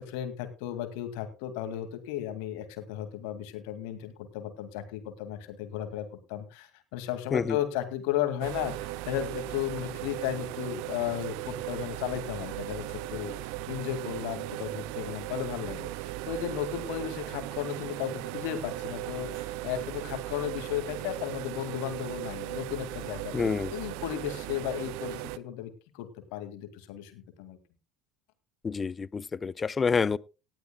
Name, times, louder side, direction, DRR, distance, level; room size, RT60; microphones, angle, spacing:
voice 1, 0.0-13.4 13.7-27.6, left 11 dB, 65° left, 2.1 m, -35 dB
sound 1, 8.4-25.4, right 16 dB, 65° right, 0.5 m, -37 dB
voice 2, 23.3-23.7 28.6-30.2, left 5 dB, 25° left, 0.5 m, -28 dB
18.5 x 12.0 x 2.2 m
figure-of-eight pair, 70°, 0 cm